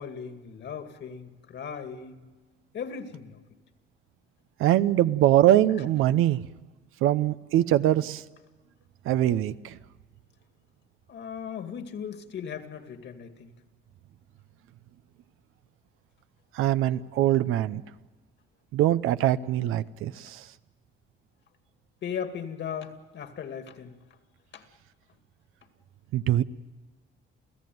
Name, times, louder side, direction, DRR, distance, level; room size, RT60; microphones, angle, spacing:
voice 1, 0.0-2.2 2.7-3.4 11.1-13.5 22.0-23.9 24.5-24.6, left 7 dB, 60° left, 7 dB, 2.3 m, -37 dB
voice 2, 4.6-6.4 7.0-8.2 9.0-9.8 16.5-17.8 18.7-20.4 26.1-26.4, right 13 dB, 85° right, 14 dB, 0.8 m, -23 dB
29.0 x 15.5 x 9.4 m, 1.3 s
cardioid pair, 100°, 21 cm